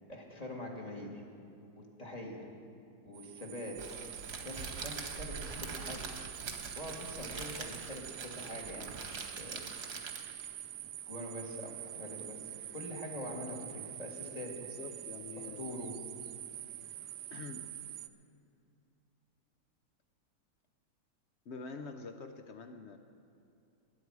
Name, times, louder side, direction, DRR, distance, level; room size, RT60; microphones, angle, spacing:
voice 1, 0.1-1.2 1.8-2.5 3.0-3.8 4.4-6.0 6.8-9.6 11.1-14.7 15.4-15.9, left 1 dB, 25° left, -1 dB, 1.7 m, -44 dB
sound 1, 3.1-18.1, right 13 dB, 80° right, 1.2 m, -46 dB
Crackle, 3.8-10.5, right 4 dB, 40° right, 1.2 m, -44 dB
voice 2, 14.7-16.1 17.3-17.7 21.4-23.0, left 4 dB, 65° left, 7 dB, 0.7 m, -46 dB
21.0 x 9.5 x 4.7 m, 2.6 s
omnidirectional pair, 1.8 m